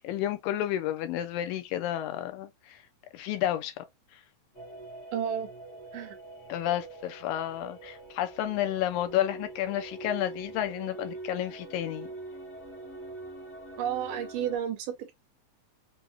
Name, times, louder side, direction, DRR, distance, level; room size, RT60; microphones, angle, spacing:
voice 1, 0.0-2.8 3.1-3.7 4.1-4.2 6.5-12.1, left 12 dB, 80° left, 2.1 m, -31 dB
sound 1, 4.5-14.6, right 2 dB, 50° left, 0.8 m, -44 dB
voice 2, 5.1-5.5 5.9-6.2 13.8-15.1, right 9 dB, 80° right, 2.1 m, -31 dB
6.2 x 2.2 x 2.9 m
omnidirectional pair, 4.3 m